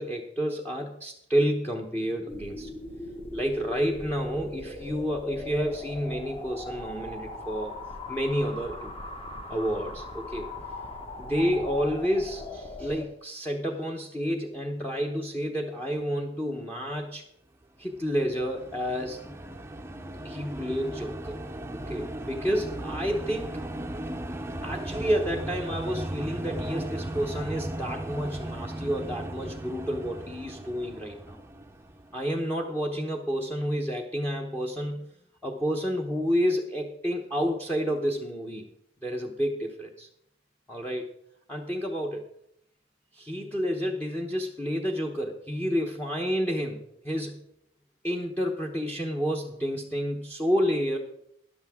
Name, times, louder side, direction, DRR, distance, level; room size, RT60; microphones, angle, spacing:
voice 1, 0.0-2.7 3.3-7.8 8.1-8.9 9.5-10.5 11.2-17.2 17.8-19.2 20.2-21.4 21.7-23.6 24.6-31.4 32.1-35.0 35.4-38.7 39.0-40.1 40.7-41.0 41.5-42.2 43.1-47.4 48.0-51.0, equal, 10° left, 0 dB, 0.9 m, -30 dB
sound 1, 2.3-13.1, left 1 dB, 30° left, 1.5 m, -39 dB
sound 2, 17.8-32.3, right 1 dB, 15° right, 0.6 m, -37 dB
13.5 x 11.0 x 3.6 m, 0.72 s
head